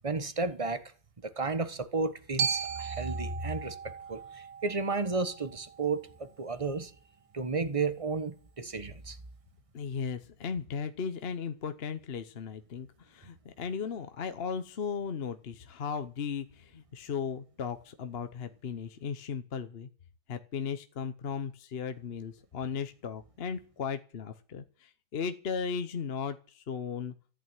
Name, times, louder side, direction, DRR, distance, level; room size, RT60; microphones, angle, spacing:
voice 1, 0.0-0.8 1.2-6.9 7.3-9.2, right 4 dB, 25° right, 0.9 m, -33 dB
Glockenspiel, 2.4-6.5, right 7 dB, 90° right, 1.7 m, -37 dB
voice 2, 9.7-19.9 20.3-27.1, left 6 dB, 45° left, 0.9 m, -36 dB
14.5 x 9.0 x 9.0 m
omnidirectional pair, 1.9 m